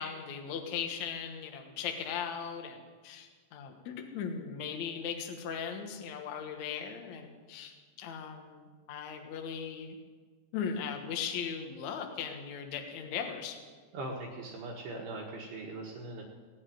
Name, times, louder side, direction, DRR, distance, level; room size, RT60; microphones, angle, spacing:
voice 1, 0.0-10.0 10.5-13.6, left 7 dB, 80° left, 4 dB, 1.6 m, -38 dB
voice 2, 13.9-16.2, right 2 dB, 65° right, -2 dB, 3.0 m, -40 dB
17.5 x 7.4 x 9.3 m, 1.5 s
omnidirectional pair, 5.5 m